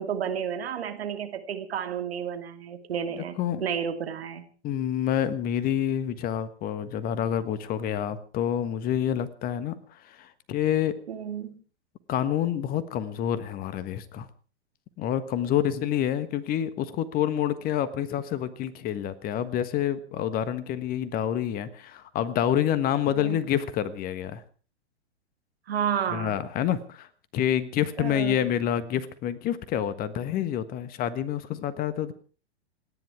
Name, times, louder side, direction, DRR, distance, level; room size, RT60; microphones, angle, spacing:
voice 1, 0.0-3.4 3.6-4.4 11.1-11.5 23.1-23.4 25.7-26.4 28.0-28.5, right 8 dB, 65° right, 7 dB, 2.8 m, -31 dB
voice 2, 3.1-3.6 4.6-11.0 12.1-14.3 15.0-24.4 26.1-27.1 27.3-32.1, left 10 dB, 25° left, 14 dB, 1.4 m, -28 dB
27.5 x 10.5 x 4.7 m, 0.38 s
figure-of-eight pair, 110°, 34 cm